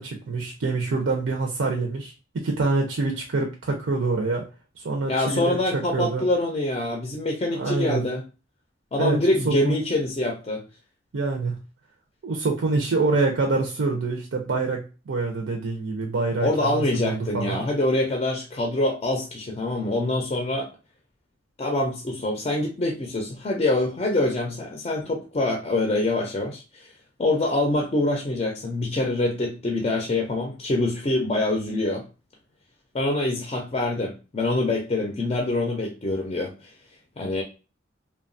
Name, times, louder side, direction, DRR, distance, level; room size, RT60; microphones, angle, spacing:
voice 1, 0.0-4.5 4.8-6.2 7.5-8.0 9.0-9.2 9.4-9.8 11.1-11.6 12.2-17.6, right 3 dB, 90° right, 1 dB, 0.5 m, -26 dB
voice 2, 5.1-8.2 8.9-10.6 16.4-20.7 21.6-26.9 27.2-32.0 32.9-36.5 37.2-37.4, left 2 dB, 30° left, 1 dB, 0.4 m, -25 dB
2.8 x 2.2 x 2.5 m, 0.32 s
head